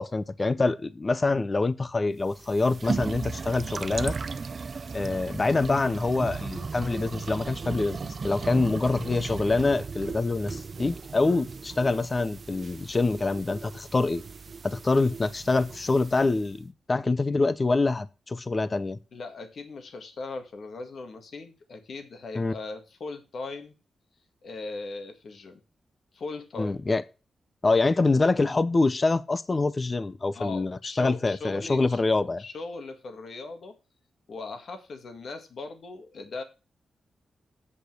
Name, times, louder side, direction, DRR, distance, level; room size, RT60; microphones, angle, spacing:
voice 1, 0.0-4.1 4.9-8.0 8.2-14.2 14.6-19.0 22.3-22.5 26.6-27.0 27.6-32.4, left 3 dB, 25° left, 0.6 m, -25 dB
sound 1, 2.2-16.5, right 5 dB, 40° right, 0.5 m, -36 dB
voice 2, 19.1-23.7 24.4-25.6 26.1-26.8 30.4-32.0 32.4-33.8 34.3-36.4, left 3 dB, 55° left, 1.8 m, -39 dB
8.5 x 5.3 x 7.7 m
wide cardioid pair, 165°, 0 cm